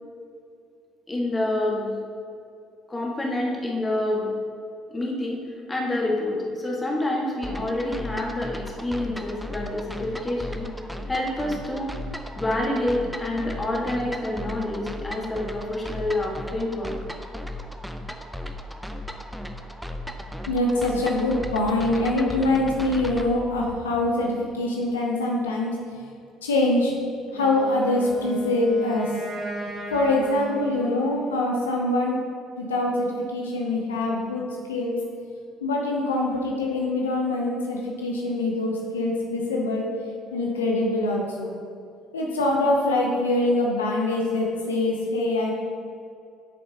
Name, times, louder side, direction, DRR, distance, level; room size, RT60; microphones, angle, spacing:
voice 1, 1.1-1.9 2.9-4.3 4.9-5.4 5.7-10.7 11.0-11.9 12.4-16.9, left 1 dB, 20° left, -2 dB, 1.7 m, -27 dB
sound 1, 7.4-23.3, equal, ahead, 0.6 m, -36 dB
voice 2, 20.5-26.0 26.4-26.9 27.3-29.2 29.9-32.2 32.6-35.0 35.6-39.9 40.3-41.5 42.1-45.5, left 2 dB, 85° left, -1 dB, 0.7 m, -24 dB
Wind instrument woodwind instrument, 27.3-31.4, right 1 dB, 40° right, 1.8 m, -36 dB
8.5 x 6.6 x 2.9 m, 2.5 s
hypercardioid pair, 55°, 0 cm